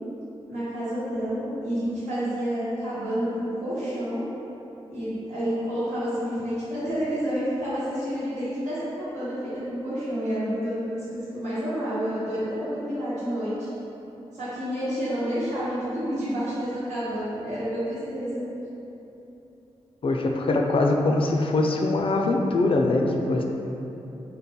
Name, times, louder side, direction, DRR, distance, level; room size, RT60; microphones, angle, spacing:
voice 1, 0.5-4.2 4.9-13.7 14.3-18.4, equal, 90° right, -12 dB, 1.2 m, -29 dB
voice 2, 20.0-23.4, left 2 dB, 50° left, 2 dB, 0.4 m, -22 dB
3.3 x 2.2 x 4.1 m, 3.0 s
cardioid pair, 50°, 12 cm